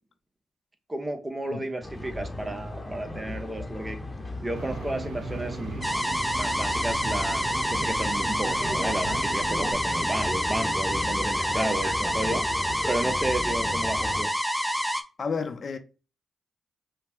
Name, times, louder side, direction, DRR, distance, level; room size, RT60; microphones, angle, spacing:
voice 1, 0.9-4.0 4.4-5.9 6.4-7.4 7.7-12.4 12.9-14.3, right 1 dB, 25° right, 1.1 m, -32 dB
sound 1, 1.8-14.2, left 1 dB, 25° left, 1.0 m, -36 dB
sound 2, 4.5-9.7, right 5 dB, 85° right, 0.6 m, -38 dB
sound 3, 5.8-15.0, equal, ahead, 0.7 m, -27 dB
voice 2, 15.2-15.8, left 5 dB, 60° left, 0.7 m, -32 dB
5.5 x 2.3 x 3.6 m
supercardioid pair, 50°, 0 cm